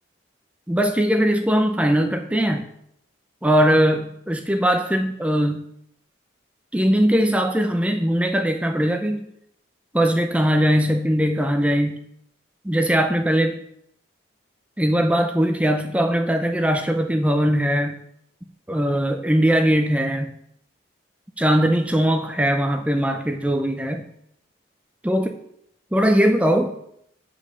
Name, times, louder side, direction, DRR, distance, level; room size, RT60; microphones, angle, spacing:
voice 1, 0.7-2.7 3.4-5.6 6.7-9.3 9.9-12.0 12.6-13.6 14.8-18.0 18.7-20.3 21.4-24.1 25.0-25.3 25.9-26.7, equal, 5° right, 6 dB, 0.5 m, -20 dB
8.9 x 5.1 x 6.9 m, 0.73 s
head